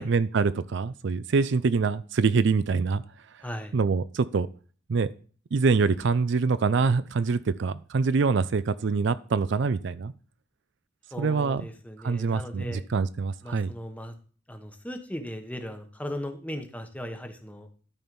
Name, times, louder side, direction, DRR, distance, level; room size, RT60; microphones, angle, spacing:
voice 1, 0.0-3.0 3.7-4.5 4.9-5.1 5.5-10.1 11.2-11.6 12.0-13.7, right 4 dB, 60° right, 14 dB, 0.4 m, -25 dB
voice 2, 3.4-3.8 11.1-12.8 13.4-14.1 14.5-17.7, equal, 5° left, 6 dB, 1.0 m, -37 dB
12.5 x 4.4 x 5.3 m, 0.40 s
head